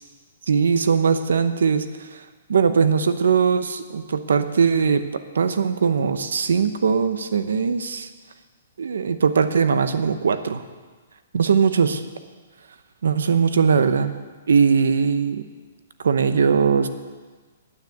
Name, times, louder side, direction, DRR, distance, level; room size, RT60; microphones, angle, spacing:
voice 1, 0.5-2.2 2.5-8.1 8.8-10.6 11.3-12.0 13.0-14.1 14.5-15.4 16.0-16.9, right 6 dB, 90° right, 11 dB, 0.9 m, -20 dB
9.8 x 9.4 x 7.9 m, 1.4 s
hypercardioid pair, 165°, 0 cm